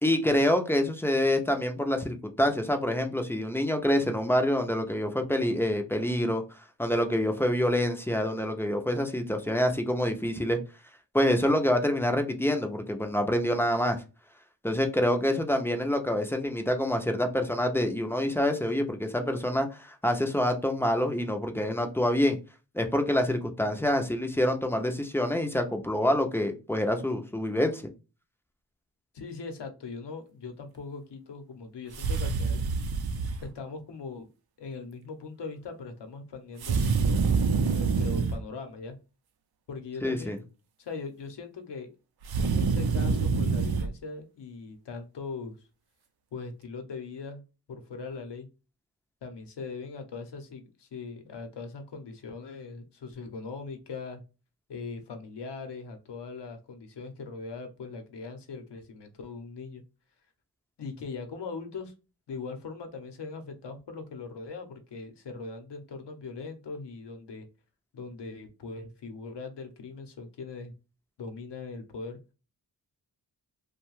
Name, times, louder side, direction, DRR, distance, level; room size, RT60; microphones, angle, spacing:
voice 1, 0.0-6.4 6.8-10.6 11.1-14.0 14.6-22.4 22.7-27.8 40.0-40.4, left 1 dB, 5° left, 0.4 m, -26 dB
voice 2, 29.1-32.6 33.4-34.3 34.6-37.2 37.7-39.0 39.7-40.4 40.8-41.9 42.4-45.5 46.3-47.4 47.7-48.5 49.2-54.2 54.7-59.8 60.8-61.9 62.3-67.4 67.9-70.7 71.2-72.2, left 4 dB, 75° left, 0.8 m, -40 dB
sound 1, 31.9-33.4 36.6-38.4 42.2-43.9, right 4 dB, 65° right, 0.5 m, -26 dB
2.7 x 2.2 x 3.0 m
wide cardioid pair, 125°, 42 cm